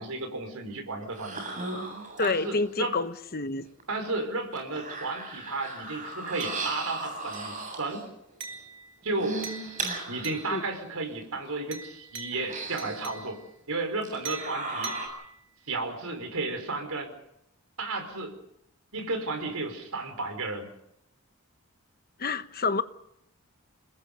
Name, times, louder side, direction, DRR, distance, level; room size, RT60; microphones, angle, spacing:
voice 1, 0.0-1.4 2.2-3.0 3.9-8.1 9.0-9.4 10.1-13.4 13.7-15.0 15.7-17.1 17.8-18.3 18.9-20.7, right 3 dB, 85° right, 5.0 m, -33 dB
sound 1, 1.0-2.5 3.8-3.9 4.5-8.1 9.0-10.7 11.2-11.3 12.3-13.2 14.0-15.1, right 2 dB, 35° right, 7.8 m, -36 dB
voice 2, 2.2-3.7 10.5-10.6 22.2-22.8, left 4 dB, 45° left, 1.1 m, -28 dB
sound 2, 6.4-7.0 7.3-7.7 8.4-10.8 11.7-13.6 14.2-15.7, right 4 dB, 60° right, 3.5 m, -44 dB
29.5 x 20.5 x 5.5 m
head